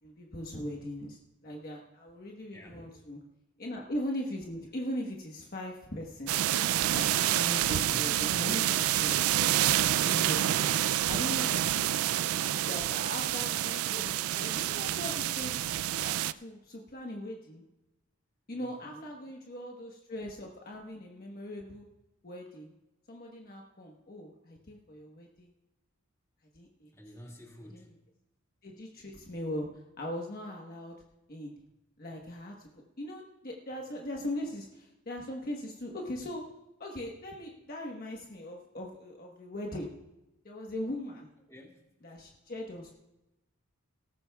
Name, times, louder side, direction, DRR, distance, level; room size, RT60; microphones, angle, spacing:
voice 1, 0.0-3.2 3.6-6.3 6.9-10.4 11.1-11.9 12.4-17.6 18.5-21.8 22.2-22.7 23.1-25.5 26.5-26.9 27.7-27.9 28.6-31.0 31.3-31.5 32.0-36.4 36.8-39.9 40.4-41.3 42.0-42.9, left 1 dB, 45° left, 0 dB, 1.2 m, -40 dB
voice 2, 2.5-2.9 7.7-8.2 18.5-19.0 26.9-28.0 41.5-41.8, equal, 15° left, -1 dB, 2.2 m, -50 dB
sound 1, 6.3-16.3, right 12 dB, 90° right, 0.4 m, -28 dB
18.5 x 14.5 x 2.3 m, 0.97 s
head